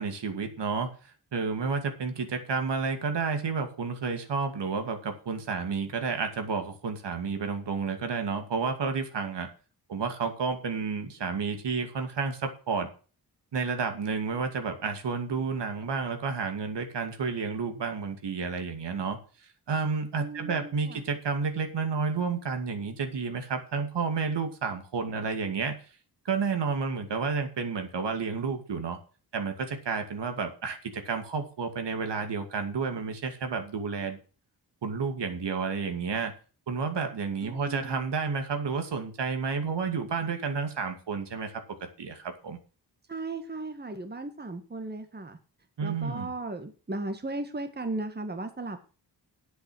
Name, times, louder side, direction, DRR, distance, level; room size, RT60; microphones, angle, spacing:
voice 1, 0.0-9.5 9.9-12.9 13.5-19.2 19.7-25.8 26.2-29.0 29.3-34.2 34.8-36.3 36.7-41.6 42.0-42.6 45.8-46.3, right 5 dB, 75° right, 6 dB, 2.5 m, -31 dB
voice 2, 20.1-21.0 37.4-38.1 43.1-45.4 45.8-48.8, right 2 dB, 25° right, 7 dB, 1.7 m, -36 dB
9.9 x 8.1 x 6.3 m, 0.36 s
cardioid pair, 90°, 42 cm